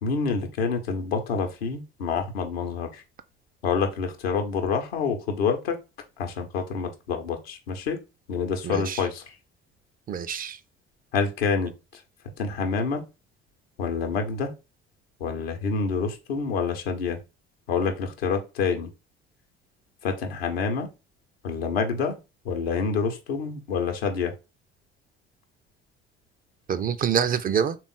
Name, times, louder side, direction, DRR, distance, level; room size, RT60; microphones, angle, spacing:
voice 1, 0.0-3.0 3.6-5.7 6.2-8.0 8.3-9.2 11.1-11.7 12.4-13.0 13.8-14.5 15.2-17.2 17.7-18.9 20.0-20.9 21.4-22.2 22.5-24.3, left 5 dB, 80° left, 0.7 m, -27 dB
voice 2, 8.6-9.1 10.1-10.6 26.7-27.8, right 7 dB, 30° right, 0.4 m, -26 dB
3.6 x 2.4 x 3.7 m
figure-of-eight pair, 50°, 30 cm